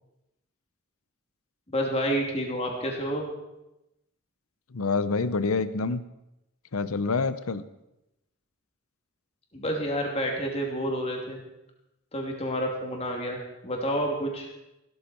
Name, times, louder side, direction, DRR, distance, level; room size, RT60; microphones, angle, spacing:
voice 1, 1.7-3.2 9.5-11.4 12.1-14.5, equal, 30° left, 0 dB, 3.0 m, -29 dB
voice 2, 4.7-6.0 6.7-7.6, left 4 dB, 85° left, 14 dB, 0.8 m, -27 dB
16.0 x 13.0 x 4.6 m, 0.91 s
head